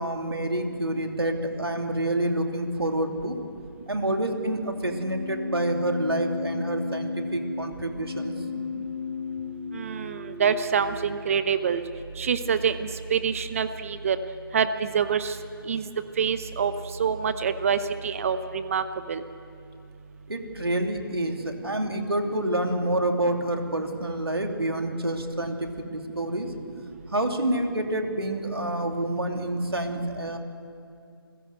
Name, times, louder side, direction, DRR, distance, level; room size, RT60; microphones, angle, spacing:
voice 1, 0.0-3.4 3.9-8.3 20.3-26.5 27.1-30.4, right 1 dB, 85° right, 4 dB, 2.8 m, -28 dB
Keyboard (musical), 4.8-10.8, left 4 dB, 5° right, 3.4 m, -34 dB
voice 2, 9.7-11.8 12.2-14.2 14.5-15.4 15.7-15.8 16.2-16.7 17.0-19.2, right 7 dB, 35° right, 11 dB, 0.8 m, -26 dB
28.5 x 16.0 x 7.8 m, 2.5 s
figure-of-eight pair, 150°, 13 cm